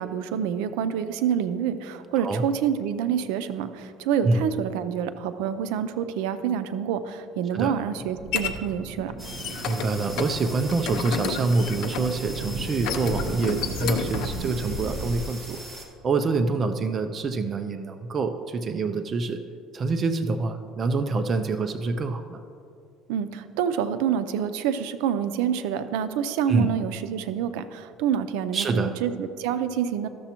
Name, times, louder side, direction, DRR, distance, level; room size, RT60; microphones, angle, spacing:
voice 1, 0.0-9.1 23.1-30.1, right 8 dB, 90° right, 11 dB, 0.5 m, -27 dB
sound 1, 7.5-8.5 9.1-9.9 10.2-10.3 10.7-12.2 12.7-14.3, left 8 dB, 65° left, 0.6 m, -31 dB
sound 2, 8.1-15.3, right 1 dB, 65° right, 1.7 m, -35 dB
sound 3, 9.2-15.8, right 1 dB, 15° right, 1.1 m, -41 dB
voice 2, 9.6-15.6 16.0-19.4 19.7-22.4 26.5-26.7 28.5-28.9, right 3 dB, 30° right, 8 dB, 0.4 m, -26 dB
13.0 x 6.9 x 2.9 m, 2.5 s
cardioid pair, 145°, 0 cm